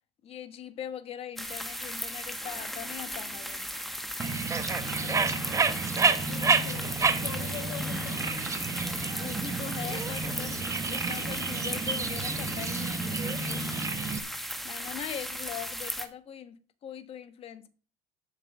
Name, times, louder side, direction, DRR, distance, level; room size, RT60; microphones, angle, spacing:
voice 1, 0.2-3.8 9.1-10.6 10.9-13.7 14.6-17.7, left 9 dB, 40° left, 1.2 m, -41 dB
sound 1, 1.4-16.1, equal, ahead, 1.3 m, -37 dB
Bird, 4.2-14.2, right 4 dB, 20° right, 1.1 m, -30 dB
voice 2, 5.0-5.6 6.3-8.3, left 9 dB, 75° left, 1.9 m, -43 dB
8.1 x 5.9 x 7.1 m
cardioid pair, 125°, 15 cm